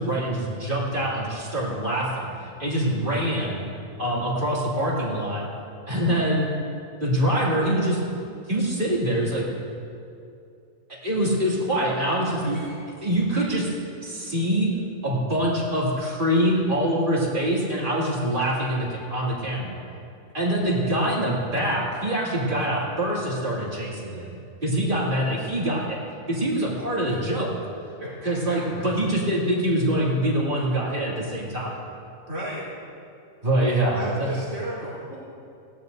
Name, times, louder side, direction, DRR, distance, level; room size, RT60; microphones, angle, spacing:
voice 1, 0.0-2.3 2.6-3.6 4.0-5.4 5.9-6.5 7.0-8.0 8.5-9.4 10.9-12.6 13.0-13.7 14.0-14.7 15.0-19.8 20.3-26.0 26.3-27.5 28.2-31.8 33.4-34.3, right 1 dB, 35° right, -6 dB, 2.8 m, -24 dB
voice 2, 12.4-12.8 27.0-27.1 28.0-28.6 30.5-30.6 32.3-32.6 33.9-35.2, right 1 dB, 75° right, -11 dB, 3.6 m, -35 dB
19.0 x 16.0 x 2.7 m, 2.6 s
omnidirectional pair, 1.4 m